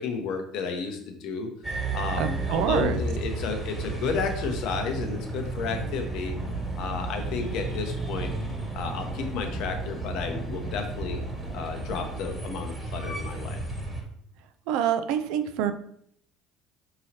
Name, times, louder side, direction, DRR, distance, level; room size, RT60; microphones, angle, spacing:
voice 1, 0.0-6.3 6.8-8.3 8.7-11.2 11.5-13.6, left 5 dB, 65° left, 6 dB, 0.7 m, -32 dB
sound 1, 1.6-14.0, right 3 dB, 15° right, 1.5 m, -33 dB
voice 2, 2.2-3.0 14.7-15.7, right 9 dB, 70° right, 9 dB, 0.3 m, -26 dB
sound 2, 4.8-12.2, equal, 15° left, 1.2 m, -42 dB
4.7 x 3.0 x 2.8 m, 0.67 s
hypercardioid pair, 70°, 0 cm